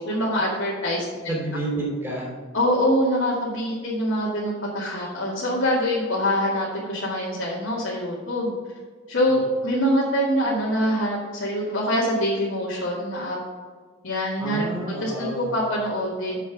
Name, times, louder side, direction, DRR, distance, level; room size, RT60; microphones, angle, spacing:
voice 1, 0.0-1.3 2.5-8.5 9.1-13.4 14.0-14.6 15.0-16.4, equal, 75° left, -7 dB, 2.3 m, -24 dB
voice 2, 1.2-2.3 9.3-9.4 14.4-15.6, right 1 dB, 10° right, -5 dB, 3.1 m, -30 dB
7.5 x 6.5 x 6.1 m, 1.5 s
head